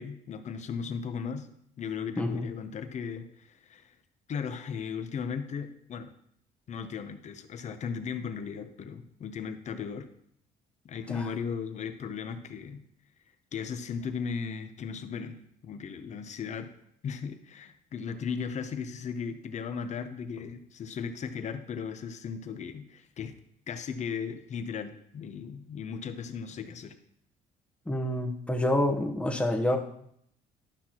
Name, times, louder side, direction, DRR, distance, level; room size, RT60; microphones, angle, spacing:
voice 1, 0.0-1.5 1.8-3.9 4.3-6.1 6.7-10.1 10.8-12.8 13.5-16.7 17.0-23.3 23.7-27.0, left 6 dB, 45° left, 9 dB, 0.8 m, -36 dB
voice 2, 2.2-2.5 11.1-11.3 27.9-29.8, left 1 dB, 5° left, 3 dB, 0.9 m, -27 dB
11.5 x 5.9 x 2.9 m, 0.70 s
cardioid pair, 110°, 17 cm